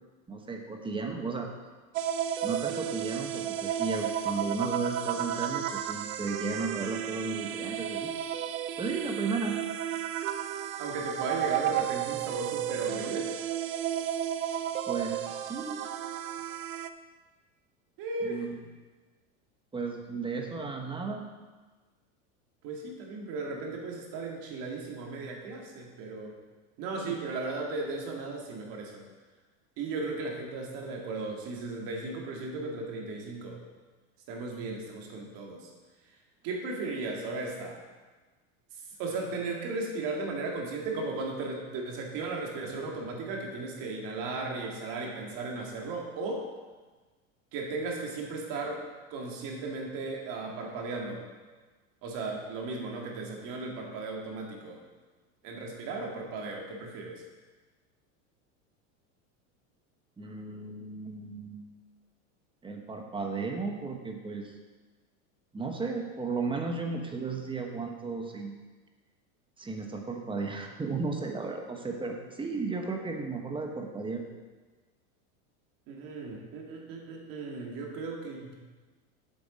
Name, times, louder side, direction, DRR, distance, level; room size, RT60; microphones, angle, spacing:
voice 1, 0.3-1.5 2.4-8.1 8.8-9.6 14.9-15.8 18.2-18.6 19.7-21.2 27.0-27.1 60.2-61.6 62.6-64.5 65.5-68.6 69.6-74.2, right 4 dB, 10° right, 3 dB, 1.1 m, -34 dB
sound 1, 1.9-16.9, right 10 dB, 85° right, 0.7 m, -33 dB
voice 2, 10.8-13.3 18.0-18.5 22.6-26.4 26.8-29.1 29.8-33.6 34.3-35.7 36.4-37.8 39.0-46.5 47.5-51.3 52.0-54.8 55.4-57.2 75.9-78.5, right 3 dB, 55° right, 0 dB, 2.2 m, -36 dB
7.8 x 6.8 x 5.1 m, 1.3 s
supercardioid pair, 125°, 41 cm